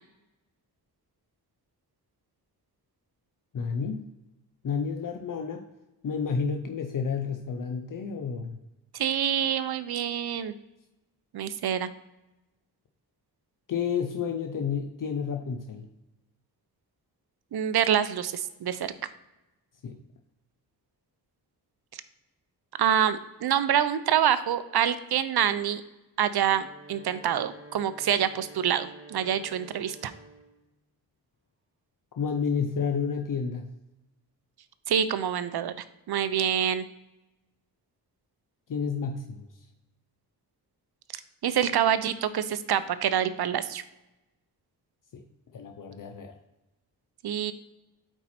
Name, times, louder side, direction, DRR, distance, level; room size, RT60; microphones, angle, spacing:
voice 1, 3.5-4.0 4.6-5.7 6.0-8.6 13.7-15.9 19.8-20.0 32.2-33.7 38.7-39.5 45.1-45.2 45.5-46.3, left 6 dB, 55° left, 4 dB, 0.6 m, -30 dB
voice 2, 8.9-10.5 11.3-11.9 17.5-18.9 22.8-25.8 26.2-30.1 34.9-35.7 36.1-36.8 41.4-43.8 47.2-47.5, right 9 dB, 70° right, 14 dB, 0.6 m, -26 dB
Wind instrument woodwind instrument, 26.4-30.6, right 2 dB, 35° right, 1.1 m, -49 dB
8.4 x 4.5 x 4.2 m, 0.99 s
wide cardioid pair, 135°, 39 cm